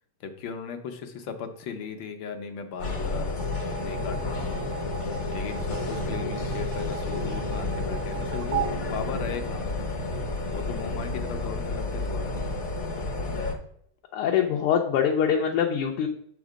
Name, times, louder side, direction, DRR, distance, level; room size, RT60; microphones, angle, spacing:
voice 1, 0.2-3.3 3.8-4.5 5.3-9.7 10.5-12.3, left 6 dB, 65° left, 6 dB, 1.4 m, -37 dB
sound 1, 2.8-13.5, left 3 dB, 50° left, 0.8 m, -31 dB
sound 2, 3.4-9.9, right 7 dB, 70° right, 1.1 m, -36 dB
voice 2, 14.1-16.1, left 8 dB, 85° left, 1 dB, 1.7 m, -24 dB
7.1 x 4.3 x 4.9 m, 0.67 s
omnidirectional pair, 2.4 m